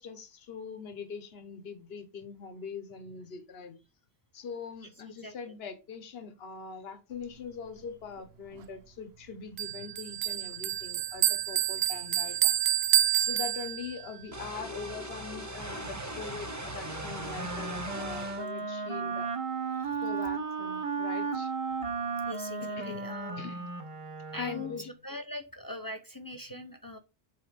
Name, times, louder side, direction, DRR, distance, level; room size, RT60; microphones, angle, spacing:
voice 1, 0.0-3.8 4.3-12.6 13.1-19.3 20.0-21.5 22.8-23.0 23.4-23.7 24.4-24.9, left 5 dB, 65° left, 1.3 m, -42 dB
voice 2, 5.2-5.5 19.7-20.0 22.3-23.4 24.3-27.0, left 1 dB, 20° left, 0.7 m, -41 dB
Bell, 9.6-14.1, right 11 dB, 70° right, 0.8 m, -28 dB
sound 1, 14.3-18.5, right 1 dB, 15° right, 1.1 m, -39 dB
Wind instrument woodwind instrument, 16.8-24.9, right 4 dB, 35° right, 0.8 m, -35 dB
7.9 x 3.4 x 5.1 m
omnidirectional pair, 1.1 m